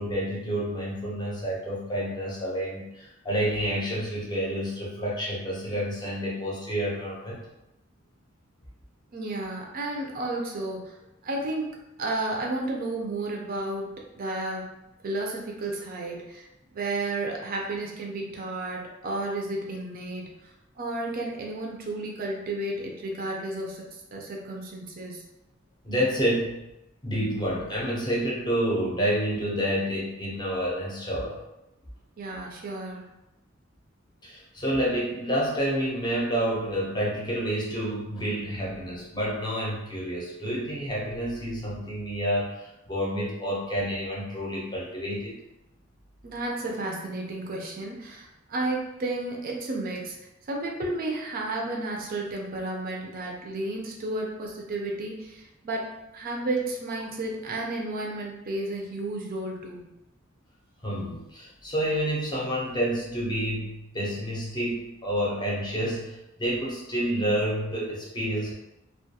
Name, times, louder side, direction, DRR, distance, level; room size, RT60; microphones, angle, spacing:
voice 1, 0.0-7.4 25.8-26.5 27.0-31.4 34.2-45.4 60.8-68.5, equal, 20° left, -4 dB, 0.6 m, -29 dB
voice 2, 9.1-11.0 11.2-14.7 15.0-16.5 16.7-20.5 20.8-25.2 32.2-33.1 46.2-50.2 50.5-59.9, right 2 dB, 45° right, 0 dB, 0.4 m, -32 dB
2.2 x 2.2 x 2.7 m, 0.91 s
head